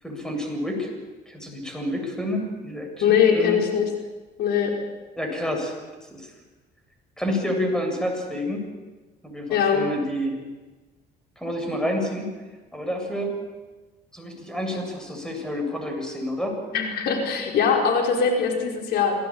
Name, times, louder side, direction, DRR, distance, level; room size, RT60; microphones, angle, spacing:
voice 1, 0.0-0.9 1.3-3.6 5.1-6.3 7.2-8.7 9.2-10.4 11.4-12.3 12.7-13.3 14.1-16.6, left 1 dB, 5° left, 3 dB, 7.5 m, -29 dB
voice 2, 3.0-3.9 4.4-4.7 9.5-9.8 16.7-19.1, left 6 dB, 70° left, 2 dB, 5.1 m, -21 dB
27.5 x 18.5 x 9.0 m, 1.2 s
cardioid pair, 110°, 17 cm